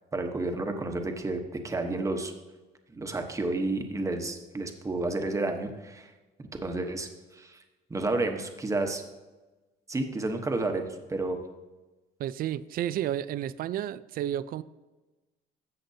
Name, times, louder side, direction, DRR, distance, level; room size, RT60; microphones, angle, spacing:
voice 1, 0.1-2.3 2.9-6.1 6.6-7.6 7.9-9.0 9.9-11.4, right 2 dB, 20° right, 5 dB, 1.1 m, -31 dB
voice 2, 12.2-14.6, right 11 dB, 60° right, 16 dB, 0.4 m, -31 dB
13.0 x 7.7 x 2.8 m, 1.2 s
cardioid pair, 110°, 17 cm